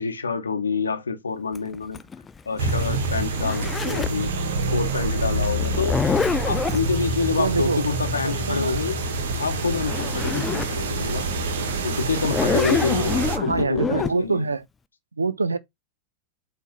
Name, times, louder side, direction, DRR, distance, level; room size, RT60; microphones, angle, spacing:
voice 1, 0.0-2.0 2.4-4.3 4.7-6.0 6.4-9.0 9.4-11.3 11.8-14.4, left 5 dB, 75° left, 1.3 m, -27 dB
Zipper (clothing), 1.6-4.3 5.6-6.9 9.5-9.6 9.8-10.8 11.3-11.4 12.1-14.1, left 5 dB, 15° left, 0.5 m, -26 dB
sound 1, 2.6-13.4, right 3 dB, 60° right, 1.6 m, -27 dB
voice 2, 7.4-7.8 8.2-8.8 13.5-14.6 15.2-15.6, right 3 dB, 75° right, 0.7 m, -25 dB
8.2 x 3.3 x 5.4 m
figure-of-eight pair, 90°, 0 cm